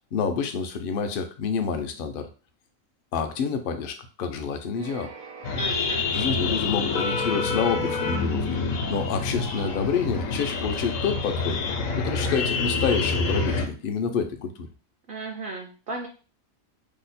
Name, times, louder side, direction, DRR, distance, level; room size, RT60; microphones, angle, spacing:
voice 1, 0.1-2.3 3.1-5.1 6.0-8.5 8.9-11.6 12.0-14.7, left 6 dB, 65° left, 6 dB, 0.5 m, -28 dB
sound 1, 4.8-13.5, right 4 dB, 80° right, 1.2 m, -45 dB
sound 2, 5.4-13.7, left 4 dB, 85° left, 1.0 m, -27 dB
voice 2, 5.5-6.0 15.1-16.1, right 3 dB, 60° right, 2 dB, 0.6 m, -35 dB
2.8 x 2.1 x 4.0 m, 0.37 s
omnidirectional pair, 1.4 m